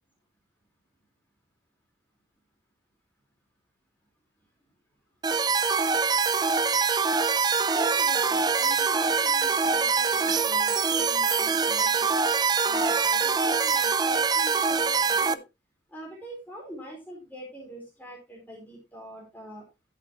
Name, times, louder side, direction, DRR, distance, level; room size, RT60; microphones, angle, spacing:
sound 1, 5.2-15.3, right 5 dB, 20° right, 0.4 m, -24 dB
voice 1, 5.6-5.9 7.7-12.2 12.6-15.4 15.9-19.6, right 1 dB, 10° left, -2 dB, 4.3 m, -42 dB
12.0 x 8.1 x 3.0 m, 0.25 s
head